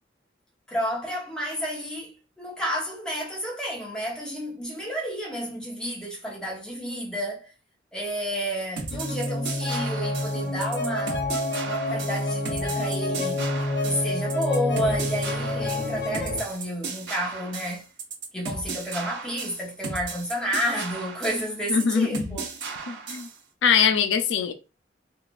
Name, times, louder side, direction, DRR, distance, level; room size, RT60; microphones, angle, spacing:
voice 1, 0.7-7.5 7.9-11.3 11.6-13.4 13.8-17.8 18.3-22.5, equal, 5° left, 0.9 m, -31 dB
sound 1, 8.8-23.4, right 4 dB, 75° right, 0.9 m, -35 dB
sound 2, 8.9-16.4, left 2 dB, 70° left, 0.8 m, -28 dB
voice 2, 21.7-22.4 22.9-23.3 23.6-24.5, left 6 dB, 85° left, 0.4 m, -22 dB
3.7 x 2.4 x 2.3 m
head